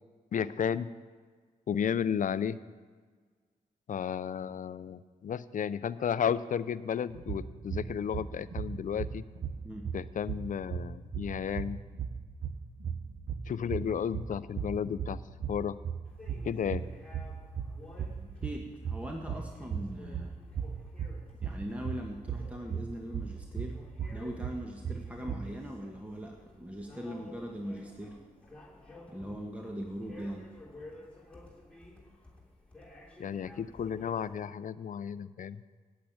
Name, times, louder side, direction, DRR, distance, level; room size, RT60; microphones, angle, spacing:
voice 1, 0.3-0.9 1.7-2.6 3.9-9.2 9.9-11.8 13.5-15.2 15.5-15.8 16.4-16.8 33.2-35.6, left 8 dB, 55° left, 16 dB, 0.5 m, -33 dB
sound 1, 7.1-25.6, right 7 dB, 60° right, 0.7 m, -38 dB
sound 2, 16.0-34.5, left 2 dB, 5° left, 3.0 m, -53 dB
voice 2, 18.4-20.3 21.4-23.8 24.1-28.2 29.1-30.5, equal, 10° right, 2 dB, 1.2 m, -40 dB
8.6 x 8.3 x 8.6 m, 1.5 s
cardioid pair, 60°, 16 cm